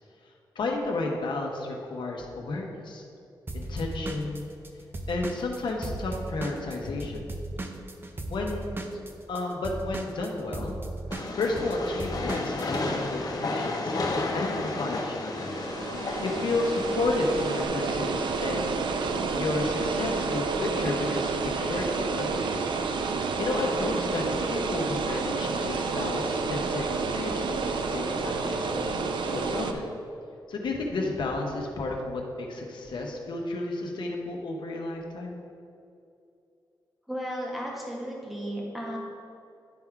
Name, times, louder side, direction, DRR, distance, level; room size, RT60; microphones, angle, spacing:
voice 1, 0.5-3.0 3.5-4.5 5.1-7.3 8.3-8.8 9.3-10.8 11.4-14.1 14.3-15.6 16.2-18.8 19.3-22.7 23.4-28.9 29.3-29.8 30.5-35.4, left 2 dB, 75° left, 1 dB, 1.0 m, -32 dB
Drum kit / Drum, 3.5-7.0 7.3-12.8, right 2 dB, 25° right, 0.6 m, -36 dB
Train, 11.1-17.6, left 2 dB, 50° left, 0.8 m, -32 dB
sound 1, 15.4-29.7, right 4 dB, 80° right, 0.5 m, -29 dB
voice 2, 37.1-39.0, equal, ahead, -3 dB, 1.4 m, -34 dB
10.5 x 3.6 x 4.6 m, 2.6 s
wide cardioid pair, 135°, 8 cm